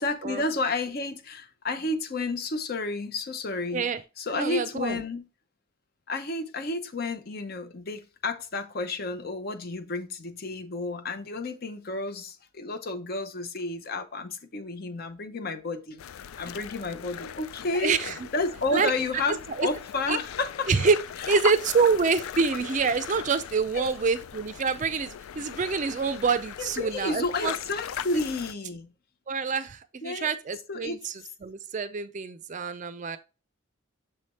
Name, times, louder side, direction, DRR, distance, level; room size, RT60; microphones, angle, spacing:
voice 1, 0.0-3.9 4.2-5.3 6.1-16.0 16.4-17.9 18.3-20.7 21.2-21.3 23.7-23.9 26.6-28.9 30.0-30.3 30.7-31.1, left 3 dB, 50° left, 0.7 m, -31 dB
voice 2, 4.3-5.0 17.8-18.1 18.7-18.9 19.6-19.7 20.1-20.2 20.7-21.0 21.3-27.5 29.3-31.1 31.4-33.2, right 5 dB, 35° right, 0.4 m, -26 dB
sound 1, 16.0-28.5, left 8 dB, 90° left, 0.4 m, -39 dB
6.8 x 3.3 x 4.1 m
head